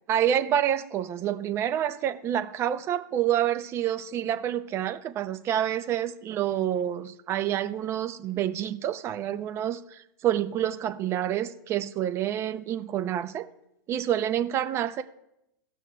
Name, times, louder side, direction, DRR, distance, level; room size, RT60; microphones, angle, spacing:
voice 1, 0.1-13.5 13.9-15.0, right 10 dB, 25° right, 10 dB, 0.5 m, -28 dB
18.0 x 6.2 x 2.2 m, 0.84 s
supercardioid pair, 150°, 12 cm